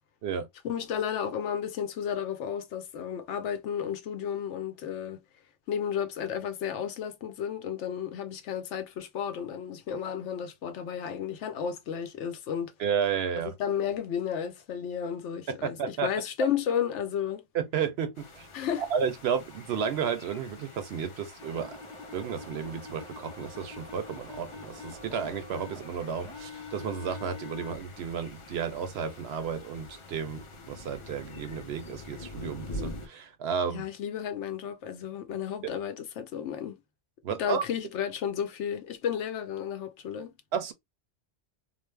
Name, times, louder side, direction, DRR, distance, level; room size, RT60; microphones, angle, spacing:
voice 1, 0.6-5.2 5.7-12.7 13.6-17.4 18.5-18.8 33.7-36.8 37.4-40.3, left 8 dB, 75° left, 0.9 m, -32 dB
voice 2, 12.8-13.5 15.5-16.1 17.5-18.5 18.8-21.8 22.1-33.8 37.2-37.6 40.5-40.7, right 7 dB, 65° right, 0.7 m, -32 dB
sound 1, 18.1-33.1, left 2 dB, 45° left, 0.4 m, -46 dB
sound 2, 21.4-27.7, left 3 dB, 5° left, 0.6 m, -45 dB
2.5 x 2.0 x 3.1 m
omnidirectional pair, 1.2 m